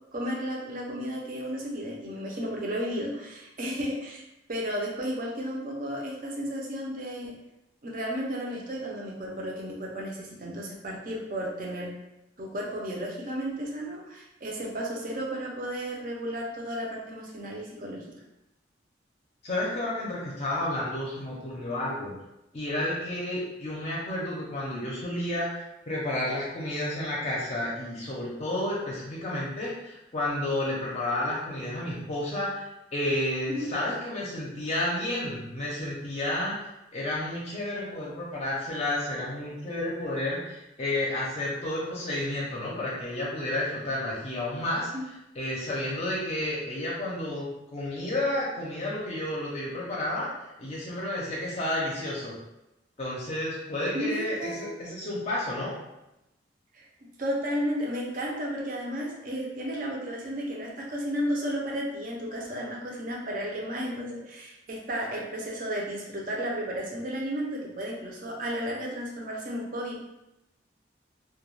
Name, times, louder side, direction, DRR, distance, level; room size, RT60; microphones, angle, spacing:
voice 1, 0.1-4.2 4.5-7.3 7.8-11.9 12.4-18.2 33.5-33.7 44.9-45.0 53.9-54.7 56.7-70.0, equal, 45° right, -1 dB, 0.5 m, -33 dB
voice 2, 19.4-22.1 22.5-25.6 25.9-44.9 45.4-50.3 50.6-52.3 53.0-55.8, left 1 dB, 35° left, -5 dB, 0.5 m, -31 dB
2.2 x 2.2 x 3.1 m, 0.92 s
head